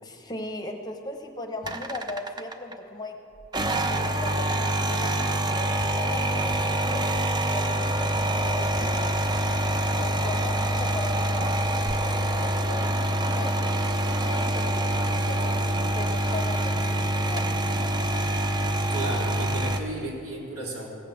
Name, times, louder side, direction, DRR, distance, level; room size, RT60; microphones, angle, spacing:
voice 1, 0.0-3.1 3.8-9.2 10.0-13.5 14.2-15.7 15.9-17.9, left 2 dB, 20° left, 4 dB, 0.9 m, -38 dB
sound 1, 1.6-2.7 3.4-19.8, right 1 dB, 20° right, 0.6 m, -26 dB
voice 2, 18.8-20.9, right 1 dB, 85° right, -4 dB, 3.7 m, -34 dB
16.5 x 8.3 x 7.1 m, 2.6 s
head